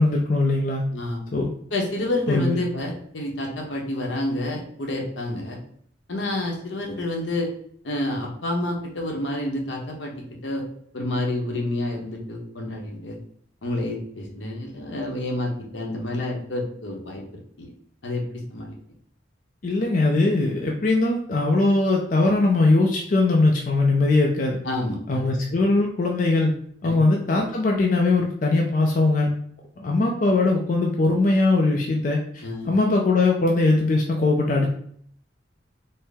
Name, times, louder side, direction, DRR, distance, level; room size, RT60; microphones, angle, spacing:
voice 1, 0.0-0.8 1.3-1.5 2.3-2.6 19.6-24.6 25.1-26.5 26.8-29.3 29.8-34.7, left 2 dB, 45° left, 0 dB, 0.4 m, -20 dB
voice 2, 0.9-1.2 1.7-5.6 6.1-7.5 7.8-10.1 10.4-10.6 10.9-13.2 13.6-17.7 18.0-18.8 24.6-25.3 26.8-27.0 27.3-27.4 32.4-32.8, left 1 dB, 75° left, 0 dB, 0.9 m, -29 dB
4.3 x 2.1 x 3.4 m, 0.63 s
head